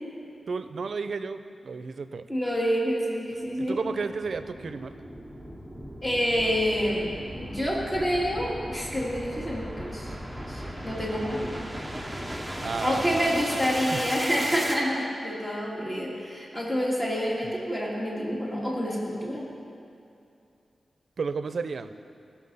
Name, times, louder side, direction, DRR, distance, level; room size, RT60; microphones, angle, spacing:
voice 1, 0.5-2.2 3.6-4.9 12.6-14.0 21.2-21.9, right 4 dB, 70° right, 11 dB, 0.5 m, -33 dB
voice 2, 2.3-3.8 6.0-10.1 10.5-11.6 12.8-19.5, equal, 15° left, -4 dB, 2.7 m, -28 dB
sound 1, 3.3-14.8, equal, ahead, 1.1 m, -37 dB
18.0 x 7.1 x 5.5 m, 2.5 s
wide cardioid pair, 85°, 0 cm